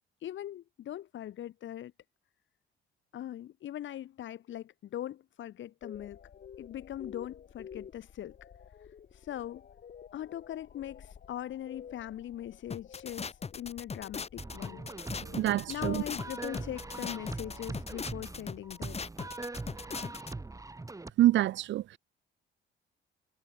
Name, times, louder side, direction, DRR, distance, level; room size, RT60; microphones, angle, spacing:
voice 1, 0.2-1.9 3.1-6.2 6.6-8.3 9.1-9.6 10.1-14.8 15.7-19.0, left 12 dB, 70° left, 2.4 m, -41 dB
sound 1, 5.8-18.1, left 7 dB, 50° left, 2.4 m, -51 dB
sound 2, 12.7-20.3, left 5 dB, 30° left, 1.6 m, -40 dB
sound 3, 14.4-21.1, right 2 dB, 15° right, 1.7 m, -42 dB
voice 2, 15.3-16.0 21.2-22.0, right 14 dB, 70° right, 0.5 m, -26 dB
cardioid pair, 90°, 20 cm